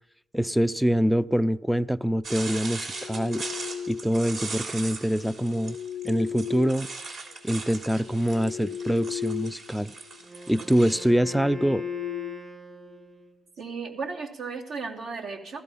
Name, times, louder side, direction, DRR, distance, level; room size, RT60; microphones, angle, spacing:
voice 1, 0.3-3.5 3.9-5.8 6.0-6.9 7.4-9.9 10.5-11.8, equal, 5° right, 0.5 m, -25 dB
sound 1, 2.2-11.1, right 3 dB, 60° right, 3.4 m, -39 dB
sound 2, 2.7-4.2 5.2-7.4 7.8-9.7 10.0-10.2 10.7-13.1, left 9 dB, 85° left, 0.5 m, -37 dB
Wind instrument woodwind instrument, 10.2-13.5, right 3 dB, 40° right, 1.4 m, -44 dB
voice 2, 13.6-15.6, right 4 dB, 80° right, 2.6 m, -35 dB
15.5 x 13.5 x 5.5 m
cardioid pair, 70°, 0 cm